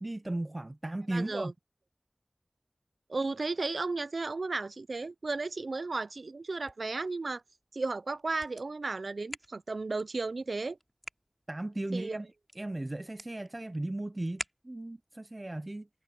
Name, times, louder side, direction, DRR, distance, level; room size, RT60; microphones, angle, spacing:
voice 1, 0.0-1.5 11.5-12.3 12.6-15.9, right 1 dB, 35° right, 0.6 m, -36 dB
voice 2, 1.1-1.5 3.1-7.4 7.7-10.8 11.9-12.2, right 3 dB, 85° right, 0.4 m, -34 dB
sound 1, 6.4-15.1, equal, 5° right, 6.5 m, -50 dB
wide cardioid pair, 45°, 0 cm